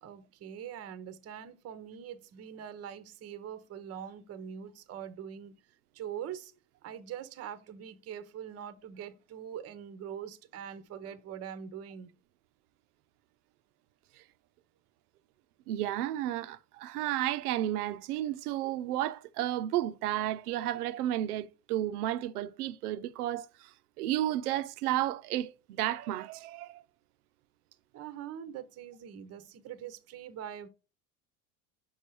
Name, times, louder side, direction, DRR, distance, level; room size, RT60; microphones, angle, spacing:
voice 1, 0.0-5.5 5.9-6.5 6.8-12.1 27.9-30.7, right 9 dB, 35° right, 0.7 m, -43 dB
voice 2, 15.7-23.7 24.0-26.8, right 13 dB, 80° right, 0.6 m, -32 dB
5.5 x 5.0 x 4.7 m
hypercardioid pair, 85°, 45 cm